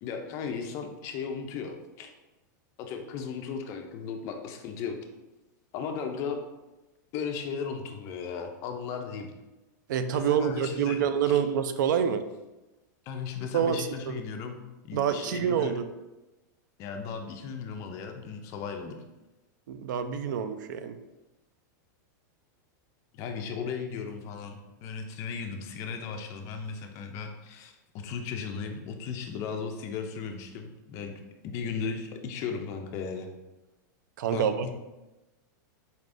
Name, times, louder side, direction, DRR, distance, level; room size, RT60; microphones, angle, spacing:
voice 1, 0.0-2.1 2.8-5.0 5.7-6.4 7.1-9.3 10.1-11.0 11.3-11.4 13.1-15.7 16.8-19.0 23.1-31.1 31.4-33.3 34.3-34.7, left 6 dB, 30° left, 4 dB, 0.3 m, -36 dB
voice 2, 9.9-12.2 13.5-14.2 14.9-15.9 19.7-21.0 34.2-34.7, right 8 dB, 70° right, 11 dB, 0.4 m, -27 dB
4.1 x 3.4 x 2.5 m, 1.0 s
supercardioid pair, 165°, 10 cm